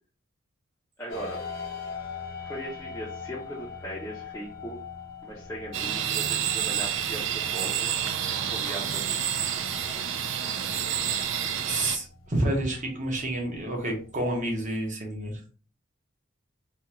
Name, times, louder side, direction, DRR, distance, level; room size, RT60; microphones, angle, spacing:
voice 1, 1.0-1.4 2.4-4.8 5.2-7.9 8.3-9.3, equal, 15° left, -6 dB, 0.5 m, -39 dB
sound 1, 1.1-14.7, left 5 dB, 80° left, 1.0 m, -43 dB
sound 2, 5.7-12.0, right 9 dB, 60° right, 0.4 m, -29 dB
voice 2, 11.6-15.4, right 1 dB, 35° right, 2 dB, 0.8 m, -29 dB
3.5 x 2.3 x 2.9 m, 0.40 s
head